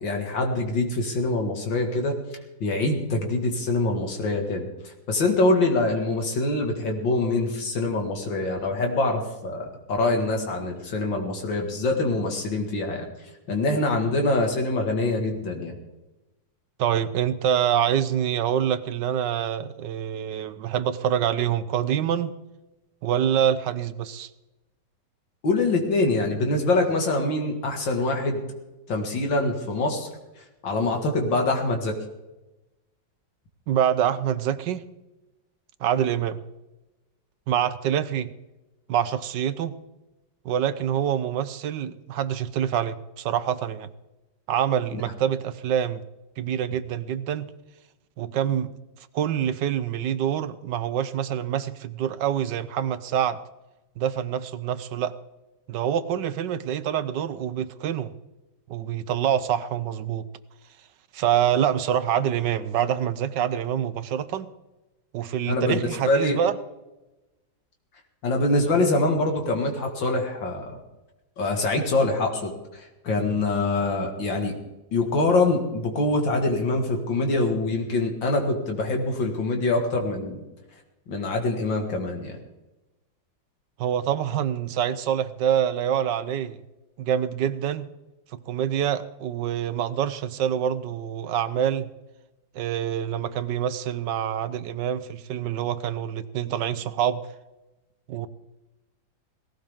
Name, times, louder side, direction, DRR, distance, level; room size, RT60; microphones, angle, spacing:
voice 1, 0.0-2.2 2.6-13.1 13.5-15.8 25.4-28.4 28.9-30.1 30.6-31.9 44.9-45.0 65.5-65.8 66.1-66.4 68.2-70.8 71.4-74.6 74.9-80.4 81.1-82.3, left 2 dB, 75° left, 2 dB, 2.6 m, -24 dB
voice 2, 16.8-22.3 23.0-24.3 33.7-34.8 35.8-36.4 37.5-38.3 38.9-39.7 40.4-43.9 44.5-46.0 46.4-47.5 48.2-48.7 49.1-53.4 54.0-55.1 55.7-58.1 58.7-60.3 61.1-64.5 65.1-66.6 83.8-86.6 87.0-87.9 88.3-91.9 92.5-97.2 98.1-98.3, right 9 dB, 70° right, 14 dB, 1.3 m, -26 dB
18.0 x 16.5 x 3.6 m, 1.0 s
omnidirectional pair, 2.0 m